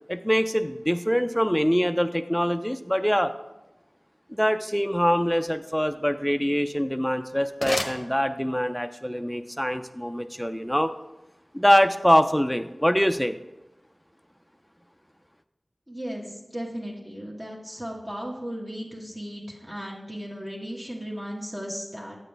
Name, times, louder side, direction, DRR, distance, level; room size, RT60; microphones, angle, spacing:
voice 1, 0.1-3.3 4.3-10.9 11.5-13.4, equal, 5° left, 7 dB, 0.3 m, -24 dB
sound 1, 6.7-8.8, left 1 dB, 20° left, 0.9 m, -34 dB
voice 2, 15.9-22.2, equal, 30° right, -3 dB, 1.4 m, -36 dB
8.5 x 6.4 x 3.3 m, 0.99 s
wide cardioid pair, 45°, 0 cm